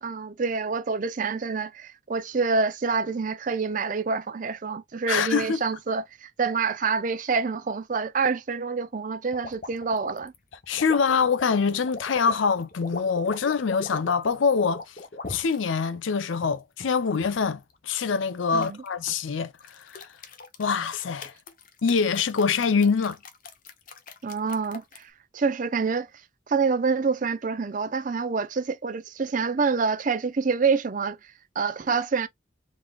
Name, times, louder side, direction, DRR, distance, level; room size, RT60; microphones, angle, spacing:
voice 1, 0.0-10.3 18.5-18.8 24.2-26.1 26.5-32.3, right 5 dB, 40° right, 0.5 m, -27 dB
voice 2, 5.1-5.6 10.7-14.8 15.3-19.5 19.9-20.0 20.6-21.3 21.8-23.2, left 5 dB, 80° left, 0.5 m, -24 dB
sound 1, 9.3-15.6 16.2-17.5 18.6-19.2 19.6-25.0, left 3 dB, 45° left, 0.7 m, -40 dB
4.0 x 3.5 x 2.3 m
head